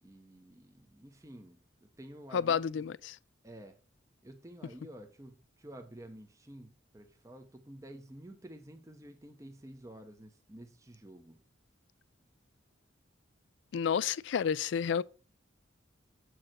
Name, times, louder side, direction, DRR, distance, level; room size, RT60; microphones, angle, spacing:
voice 1, 0.0-2.8 3.4-3.8 4.2-11.4, right 1 dB, 15° right, 0.7 m, -51 dB
voice 2, 2.3-3.2 13.7-15.0, left 7 dB, 65° left, 0.3 m, -30 dB
7.6 x 4.7 x 5.9 m
head